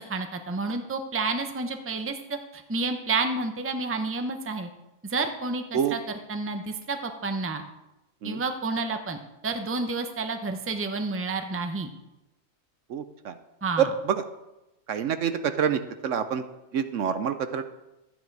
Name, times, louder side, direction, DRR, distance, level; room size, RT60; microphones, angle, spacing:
voice 1, 0.0-4.7 5.0-7.6 8.2-9.2 9.4-11.9 13.6-13.9, right 3 dB, 10° right, 6 dB, 0.7 m, -30 dB
voice 2, 12.9-13.3 13.8-13.9 14.9-16.4 16.7-17.6, right 8 dB, 65° right, 10 dB, 1.0 m, -26 dB
12.5 x 9.4 x 4.7 m, 0.96 s
omnidirectional pair, 1.5 m